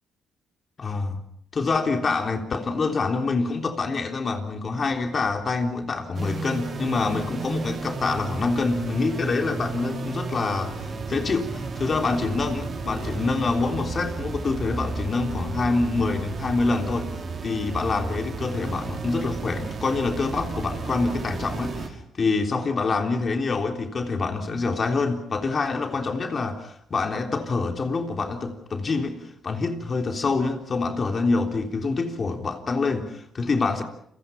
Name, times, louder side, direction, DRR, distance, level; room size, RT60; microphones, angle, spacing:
voice 1, 0.8-1.2 1.5-10.8 11.1-17.1 17.4-29.2 29.4-33.8, left 3 dB, 40° left, 3.4 m, -26 dB
sound 1, 6.1-21.9, right 4 dB, 45° right, 5.7 m, -33 dB
29.5 x 23.0 x 5.7 m
cardioid pair, 90°, 0 cm